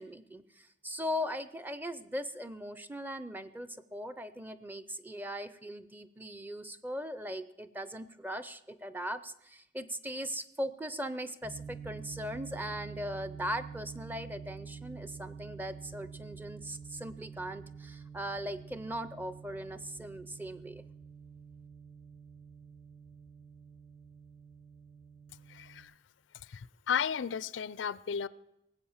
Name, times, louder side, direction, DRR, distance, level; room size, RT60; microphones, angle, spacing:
voice 1, 0.0-20.8, equal, 10° right, 0.5 m, -39 dB
sound 1, 11.4-25.8, right 6 dB, 70° right, 7.4 m, -48 dB
voice 2, 25.5-25.9 26.5-28.3, left 7 dB, 80° left, 0.4 m, -34 dB
18.5 x 7.8 x 7.1 m
head